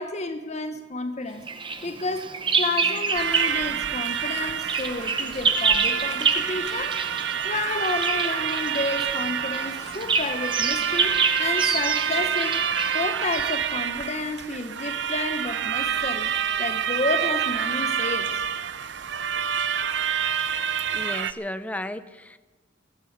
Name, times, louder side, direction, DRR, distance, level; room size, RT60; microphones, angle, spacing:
voice 1, 0.0-1.5 1.8-7.0 7.4-12.6 12.9-16.3 16.6-18.4, left 2 dB, 35° left, 8 dB, 1.1 m, -31 dB
Bird vocalization bird call bird song, 1.5-3.7 4.0-13.5, right 5 dB, 25° right, 0.9 m, -27 dB
sound 1, 3.1-21.3, right 8 dB, 65° right, 0.6 m, -28 dB
voice 2, 20.9-22.4, left 1 dB, 10° left, 12 dB, 0.5 m, -34 dB
15.5 x 11.0 x 8.0 m, 1.2 s
head